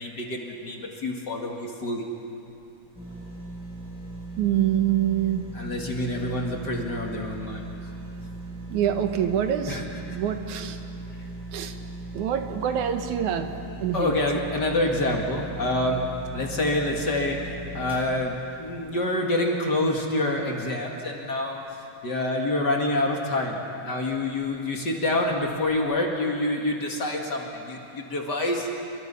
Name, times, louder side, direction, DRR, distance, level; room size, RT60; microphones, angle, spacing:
voice 1, 0.0-2.1 5.5-7.8 9.7-10.2 13.9-16.0 16.3-17.4 17.7-21.6 22.0-28.7, left 1 dB, 40° left, 1 dB, 2.2 m, -27 dB
sound 1, 2.9-20.1 20.6-20.7, right 2 dB, ahead, 7.2 m, -39 dB
voice 2, 4.4-5.4 8.7-9.8 10.1-10.8 11.5-11.7 12.1-13.5 13.8-14.2, right 10 dB, 90° right, 7 dB, 2.6 m, -25 dB
28.5 x 23.0 x 5.5 m, 2.7 s
omnidirectional pair, 3.4 m